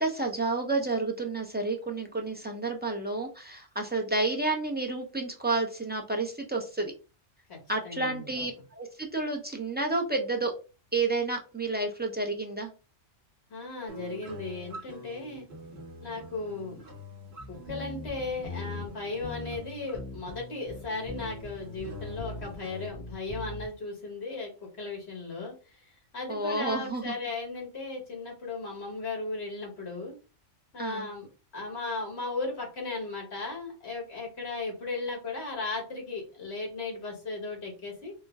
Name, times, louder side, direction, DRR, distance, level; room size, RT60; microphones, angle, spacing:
voice 1, 0.0-6.9 7.7-10.5 10.9-12.7 26.3-27.1 30.8-31.1, right 3 dB, 10° right, 0 dB, 0.5 m, -30 dB
voice 2, 7.8-8.5 13.5-15.5 16.0-16.8 17.5-25.5 26.1-30.1 30.7-31.3 31.5-38.1, left 3 dB, 60° left, -1 dB, 1.8 m, -36 dB
sound 1, 13.9-22.9, left 1 dB, 60° right, 1.2 m, -46 dB
sound 2, 17.4-18.9 19.2-19.6 19.9-20.4 20.7-22.6 22.9-23.7, left 3 dB, 40° left, 2.0 m, -40 dB
4.3 x 2.1 x 3.5 m, 0.33 s
omnidirectional pair, 1.2 m